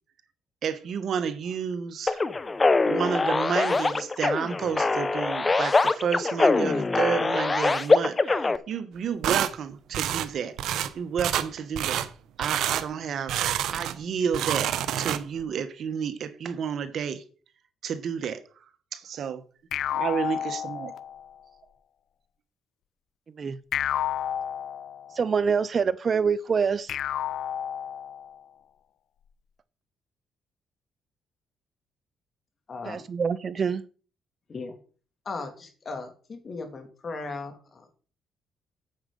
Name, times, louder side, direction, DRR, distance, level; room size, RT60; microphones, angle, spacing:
voice 1, 0.6-2.2 2.9-10.6 10.9-12.1 12.4-17.2 17.8-18.4 18.9-19.4 19.9-20.9, right 7 dB, 65° right, 1.2 m, -31 dB
sound 1, 2.1-8.6, left 3 dB, 25° left, 0.8 m, -23 dB
sound 2, 9.2-9.5 9.9-10.3 10.6-10.9 11.2-11.5 11.7-12.1 12.4-12.8 13.3-14.0 14.3-15.4, right 11 dB, 85° right, 0.8 m, -27 dB
sound 3, 19.7-21.3 23.7-25.3 26.9-28.4, left 10 dB, 75° left, 0.6 m, -31 dB
voice 2, 25.2-27.0 32.9-33.8, right 6 dB, 45° right, 0.5 m, -25 dB
voice 3, 32.7-33.0 34.5-34.8 35.2-38.0, left 3 dB, 40° left, 3.0 m, -37 dB
9.2 x 7.4 x 5.3 m
cardioid pair, 90°, 0 cm